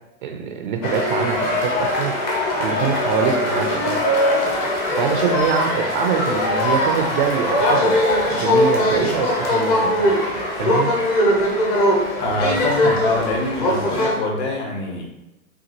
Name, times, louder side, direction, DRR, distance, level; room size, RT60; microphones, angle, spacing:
voice 1, 0.2-2.1 2.6-4.0 5.0-8.0 8.3-10.1 10.6-10.9, right 7 dB, 35° right, 3 dB, 0.5 m, -24 dB
sound 1, 0.8-14.2, left 1 dB, 20° left, 0.7 m, -20 dB
voice 2, 12.2-15.0, left 2 dB, 50° left, 0 dB, 1.3 m, -24 dB
5.8 x 2.4 x 2.9 m, 0.95 s
hypercardioid pair, 130°, 44 cm